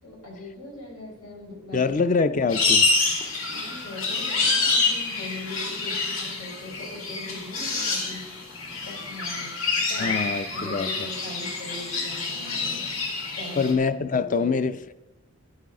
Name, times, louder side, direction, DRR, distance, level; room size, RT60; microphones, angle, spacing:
voice 1, 0.0-1.9 3.4-8.4 8.8-9.6 9.9-10.2 10.5-12.9 13.4-13.7 14.1-14.6, left 1 dB, 90° left, 4.7 m, -40 dB
voice 2, 1.7-2.9 10.0-11.1 13.6-14.9, left 4 dB, 35° left, 0.4 m, -25 dB
sound 1, 2.5-13.7, left 3 dB, 65° left, 2.0 m, -27 dB
12.5 x 10.0 x 3.7 m
head